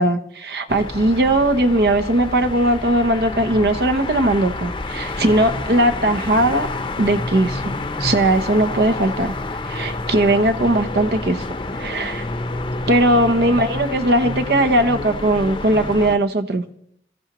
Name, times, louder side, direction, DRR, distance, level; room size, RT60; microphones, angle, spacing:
voice 1, 0.0-6.7 7.0-7.7 8.0-9.3 9.6-11.4 11.7-12.2 12.9-16.6, right 1 dB, 65° right, 8 dB, 0.9 m, -18 dB
sound 1, 0.7-16.2, left 2 dB, 25° left, 0.7 m, -28 dB
26.5 x 14.0 x 3.0 m, 0.71 s
head